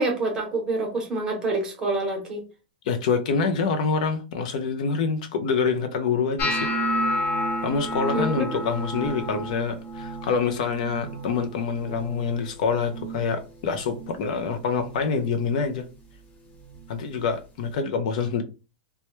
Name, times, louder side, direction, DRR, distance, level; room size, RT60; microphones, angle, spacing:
voice 1, 0.0-2.4 8.1-8.5, right 2 dB, 15° right, 0.9 m, -26 dB
voice 2, 2.9-6.7 7.6-15.9 16.9-18.4, left 5 dB, 60° left, 0.5 m, -26 dB
sound 1, 6.4-12.5 12.8-13.3 13.6-14.2 14.8-15.0 16.8-16.9, equal, 25° left, 1.1 m, -30 dB
3.1 x 2.2 x 3.0 m
supercardioid pair, 165°, 5 cm